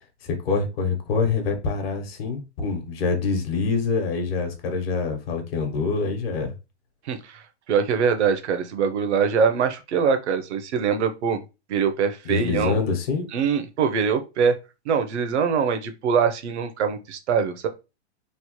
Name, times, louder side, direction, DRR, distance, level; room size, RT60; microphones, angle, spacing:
voice 1, 0.2-6.5 12.2-13.4, left 4 dB, 55° left, 1.0 m, -25 dB
voice 2, 7.1-7.4 7.7-11.4 11.7-12.8 13.3-14.6 14.9-17.7, right 6 dB, 70° right, 0.7 m, -23 dB
3.1 x 2.0 x 3.0 m
hypercardioid pair, 145°, 35 cm